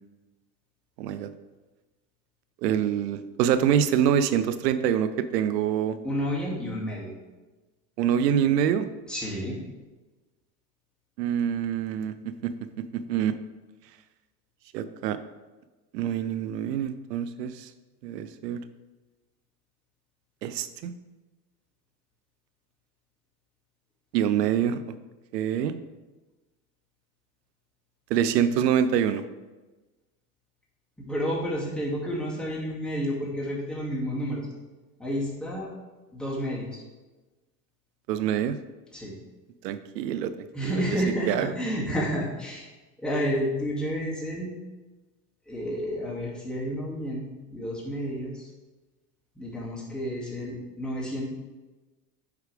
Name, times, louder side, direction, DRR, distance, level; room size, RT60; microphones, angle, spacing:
voice 1, 1.0-1.3 2.6-6.0 8.0-8.9 11.2-12.1 12.4-12.5 12.9-13.3 14.7-15.2 15.9-17.7 18.0-18.6 20.4-20.9 24.1-24.8 25.3-25.7 28.1-29.2 38.1-38.6 39.6-40.3 40.6-40.8 41.3-41.5, right 9 dB, 85° right, 12 dB, 0.6 m, -25 dB
voice 2, 6.0-7.1 9.1-9.6 31.0-34.4 35.0-35.7 36.1-36.8 38.9-39.2 40.5-42.7 43.0-44.5 45.5-48.5 49.4-51.2, equal, ahead, -5 dB, 2.2 m, -30 dB
8.3 x 4.7 x 3.4 m, 1.2 s
hypercardioid pair, 90°, 48 cm